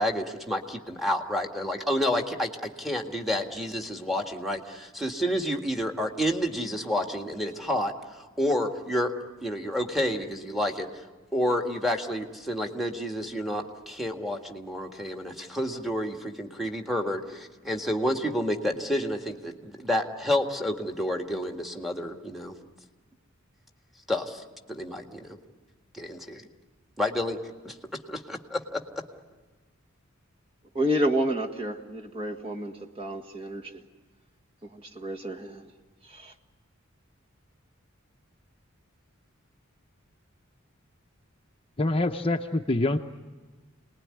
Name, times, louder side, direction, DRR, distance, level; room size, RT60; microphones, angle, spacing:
voice 1, 0.0-9.1 9.4-11.0 11.3-22.6 24.1-24.4 24.7-25.4 25.9-26.5 27.0-27.4 27.6-27.8 28.1-28.8, left 1 dB, ahead, 3 dB, 1.8 m, -29 dB
voice 2, 30.7-33.7 34.7-35.7 36.1-36.3, equal, 30° right, 2 dB, 1.8 m, -30 dB
voice 3, 41.8-43.0, left 2 dB, 25° left, 5 dB, 0.8 m, -25 dB
28.0 x 20.5 x 9.8 m, 1.3 s
head